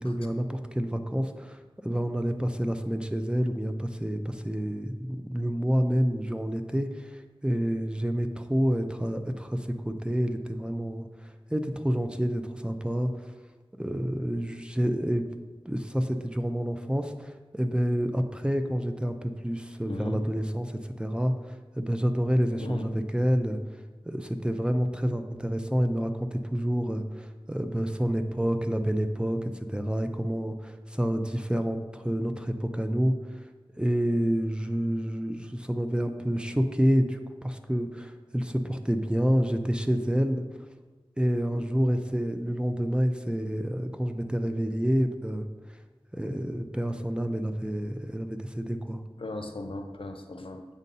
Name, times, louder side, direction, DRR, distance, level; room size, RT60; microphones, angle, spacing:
voice 1, 0.0-1.6 1.8-13.1 13.8-15.2 15.7-23.6 24.0-33.4 33.8-40.4 41.2-45.4 46.1-49.0, equal, 10° right, 6 dB, 0.4 m, -28 dB
voice 2, 19.9-20.2 22.6-22.9 41.5-41.6 49.2-50.7, left 2 dB, 70° left, 6 dB, 0.5 m, -37 dB
7.2 x 2.7 x 5.3 m, 1.3 s
wide cardioid pair, 50°, 10 cm